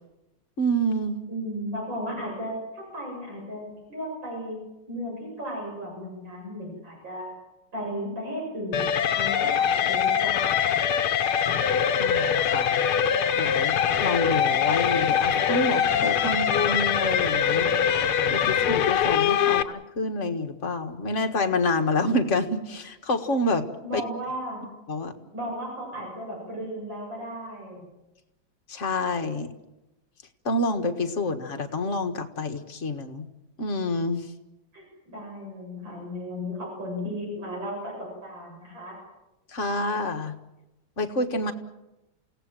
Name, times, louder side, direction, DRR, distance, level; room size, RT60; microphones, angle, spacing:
voice 1, 0.6-1.2 12.0-12.8 13.4-17.7 18.3-24.0 24.9-25.1 28.7-29.5 30.5-33.3 33.6-34.3 39.5-40.4 41.0-41.5, left 1 dB, 35° left, 6 dB, 1.8 m, -28 dB
voice 2, 1.3-4.6 4.9-7.3 7.7-10.8 23.8-24.6 25.3-27.9 34.7-39.0, equal, 55° right, -2 dB, 8.6 m, -35 dB
sound 1, 8.7-19.6, left 8 dB, 80° left, 1.9 m, -23 dB
29.5 x 17.5 x 7.7 m, 0.98 s
omnidirectional pair, 2.4 m